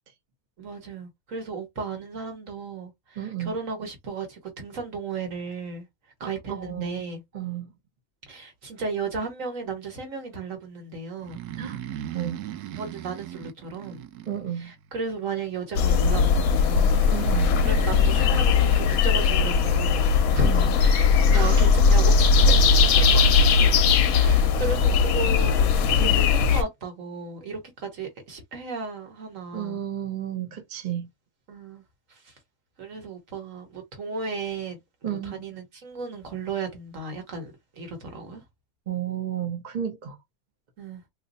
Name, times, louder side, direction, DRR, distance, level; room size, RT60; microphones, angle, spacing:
voice 1, 0.6-5.8 6.2-7.2 8.3-11.4 12.8-14.0 14.6-17.0 17.6-23.2 24.1-25.7 26.0-29.8 31.5-31.8 32.8-34.8 35.1-38.4 40.8-41.0, right 4 dB, 55° right, 1.5 m, -34 dB
voice 2, 3.2-3.5 6.2-7.0 7.3-7.7 11.6-11.8 12.1-12.4 14.2-14.7 17.1-17.5 20.4-20.7 21.3-21.6 26.0-26.2 29.5-31.1 35.0-35.4 38.9-40.2, right 10 dB, 40° right, 0.8 m, -32 dB
Breathing, 11.2-14.9 16.7-19.8, right 11 dB, 80° right, 1.1 m, -38 dB
sound 1, 15.7-26.6, left 5 dB, 70° left, 1.0 m, -19 dB
3.0 x 2.2 x 3.9 m
omnidirectional pair, 1.6 m